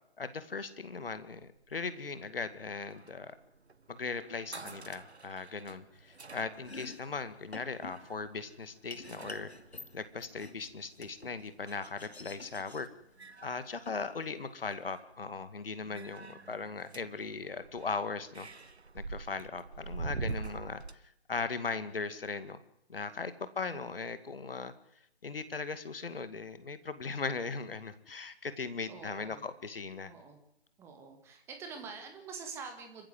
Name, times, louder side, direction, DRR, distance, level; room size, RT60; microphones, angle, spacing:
voice 1, 0.2-3.4 3.9-9.5 9.9-12.9 13.4-18.5 18.9-21.0 21.3-22.6 22.9-24.7 25.2-30.1, left 4 dB, 60° left, 12 dB, 2.2 m, -38 dB
sound 1, 1.2-10.9 12.3-12.6 13.0-14.3 14.6-15.2 15.9-20.9, right 3 dB, 80° right, 1.3 m, -46 dB
Domestic sounds home sounds, 6.5-14.7, left 3 dB, 80° left, 2.7 m, -51 dB
voice 2, 15.8-16.8 23.6-24.0 28.9-29.4 30.0-30.4 30.8-33.1, right 5 dB, 10° right, 5 dB, 1.9 m, -47 dB
26.0 x 15.0 x 7.9 m, 0.79 s
figure-of-eight pair, 150°, 32 cm